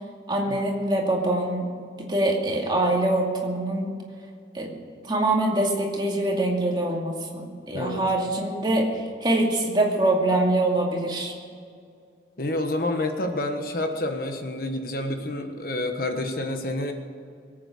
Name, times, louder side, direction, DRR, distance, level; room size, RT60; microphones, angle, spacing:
voice 1, 0.3-1.7 2.0-3.9 4.5-4.7 5.0-11.3, right 1 dB, 25° right, -1 dB, 2.4 m, -24 dB
voice 2, 12.4-16.9, left 1 dB, 50° left, 5 dB, 1.3 m, -28 dB
23.0 x 8.9 x 6.6 m, 2.3 s
head